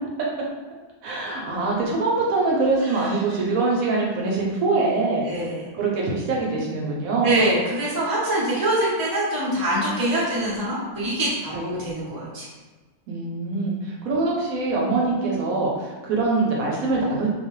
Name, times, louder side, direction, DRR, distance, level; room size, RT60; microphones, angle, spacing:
voice 1, 1.0-5.3 5.7-7.4 11.5-11.8 13.1-17.3, right 3 dB, 70° right, -3 dB, 0.9 m, -24 dB
voice 2, 2.8-3.1 5.2-5.7 7.2-12.5, right 1 dB, 25° right, -7 dB, 0.5 m, -24 dB
2.6 x 2.3 x 3.0 m, 1.4 s
omnidirectional pair, 1.6 m